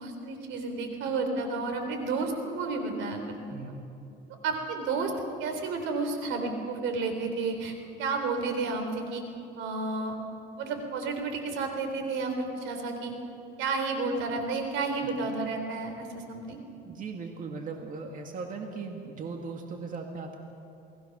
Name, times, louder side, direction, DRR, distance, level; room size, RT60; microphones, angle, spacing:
voice 1, 0.0-3.4 4.4-5.1 5.4-7.7 8.0-9.2 9.6-10.2 10.6-13.1 13.6-16.6, right 3 dB, 80° right, 5 dB, 3.9 m, -31 dB
voice 2, 3.5-3.8 16.8-20.4, right 4 dB, 45° right, 2 dB, 2.2 m, -38 dB
29.0 x 20.0 x 6.1 m, 2.8 s
cardioid pair, 120°, 19 cm